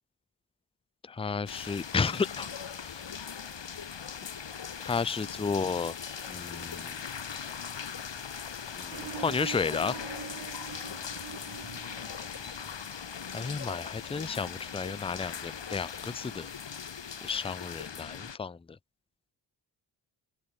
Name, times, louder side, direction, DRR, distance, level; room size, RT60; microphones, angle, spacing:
voice 1, 1.1-3.0 4.8-5.9 6.3-7.0 8.7-10.0 13.3-16.5 17.2-18.6, left 5 dB, 10° left, 0.5 m, -32 dB
sound 1, 1.5-18.4, left 7 dB, 65° left, 5.2 m, -40 dB
sound 2, 8.9-13.0, right 9 dB, 65° right, 1.6 m, -44 dB
open air
supercardioid pair, 45°, 47 cm